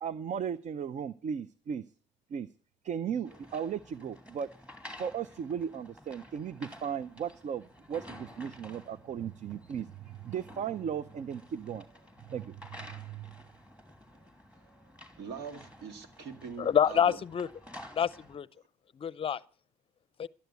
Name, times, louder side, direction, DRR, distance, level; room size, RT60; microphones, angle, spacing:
voice 1, 0.0-1.8 2.3-2.5 2.8-4.5 5.0-11.9 12.3-12.6 12.9-13.3, right 8 dB, 45° right, 0.6 m, -36 dB
sound 1, 3.2-18.4, left 1 dB, 5° right, 2.8 m, -52 dB
voice 2, 15.2-17.2, right 5 dB, 80° right, 2.2 m, -42 dB
voice 3, 16.6-17.5 17.9-18.5 18.9-19.4 20.2-20.3, left 8 dB, 35° left, 0.6 m, -27 dB
13.0 x 10.5 x 8.2 m
cardioid pair, 110°, 17 cm